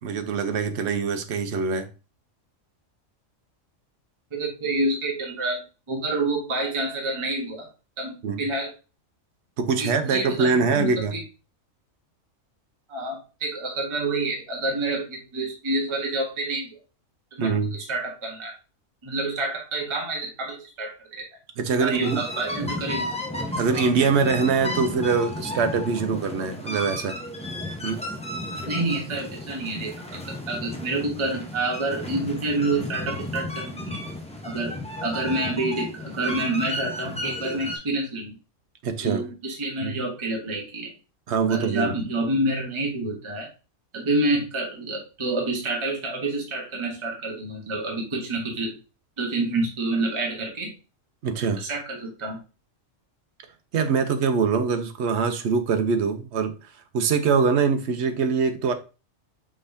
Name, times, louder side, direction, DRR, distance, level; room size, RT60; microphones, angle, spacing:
voice 1, 0.0-1.9 8.2-8.4 9.6-11.1 17.4-17.7 21.6-22.3 23.6-27.2 27.8-28.0 38.8-39.2 39.8-39.9 41.3-41.9 51.2-51.6 53.7-58.7, right 5 dB, 60° right, 0.9 m, -23 dB
voice 2, 4.3-7.7 8.0-8.7 9.8-11.2 12.9-16.7 17.3-18.5 19.0-21.2 21.8-23.1 28.6-34.0 34.4-38.4 39.0-40.9 41.5-43.5 43.9-48.8 49.2-50.7 51.6-52.4, right 2 dB, 25° right, 1.0 m, -28 dB
sound 1, 21.9-37.8, left 1 dB, 5° left, 0.6 m, -33 dB
5.2 x 3.7 x 2.6 m
omnidirectional pair, 1.4 m